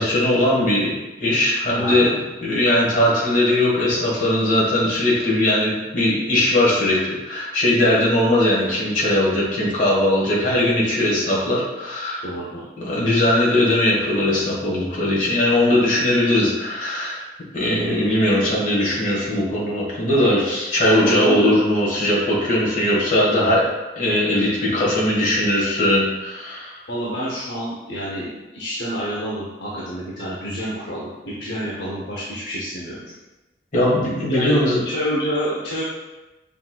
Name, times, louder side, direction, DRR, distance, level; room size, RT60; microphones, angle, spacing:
voice 1, 0.0-12.2 12.8-17.3 17.5-23.6 23.9-26.8 33.7-34.8, left 1 dB, 45° left, -6 dB, 1.3 m, -19 dB
voice 2, 1.8-2.1 12.2-12.7 20.8-21.5 26.9-33.0 34.3-34.6 34.8-35.8, equal, 65° left, -6 dB, 0.7 m, -28 dB
5.6 x 2.9 x 2.3 m, 1.1 s
head